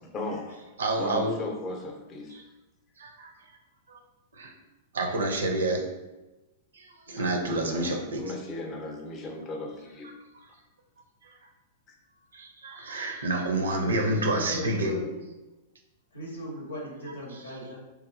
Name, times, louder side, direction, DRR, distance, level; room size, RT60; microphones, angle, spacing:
voice 1, 0.0-0.7 1.0-2.5 7.2-10.2 10.5-10.6, left 2 dB, 30° left, 2 dB, 0.6 m, -37 dB
voice 2, 0.8-1.4 2.3-2.4 3.0-3.3 3.9-4.0 4.3-4.5 4.9-5.9 6.7-8.2 11.2-11.4 12.3-15.0, right 2 dB, 75° right, 2 dB, 0.5 m, -29 dB
voice 3, 13.8-15.2 16.1-17.8, equal, 90° left, -2 dB, 0.8 m, -38 dB
2.9 x 2.4 x 2.5 m, 1.1 s
hypercardioid pair, 105°, 0 cm